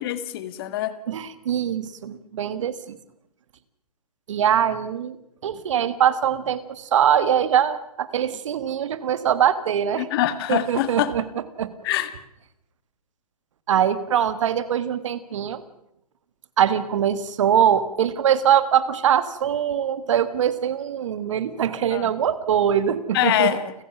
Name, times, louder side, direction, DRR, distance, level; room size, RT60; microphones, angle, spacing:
voice 1, 0.0-0.9 10.0-11.1 11.8-12.1 21.9-22.1 23.1-23.7, left 13 dB, 40° left, 13 dB, 1.7 m, -24 dB
voice 2, 1.1-3.0 4.3-5.2 5.4-10.1 10.5-11.7 13.7-15.6 16.6-23.5, right 9 dB, 50° right, 14 dB, 1.6 m, -22 dB
29.5 x 15.5 x 6.0 m, 0.80 s
figure-of-eight pair, 130°, 20 cm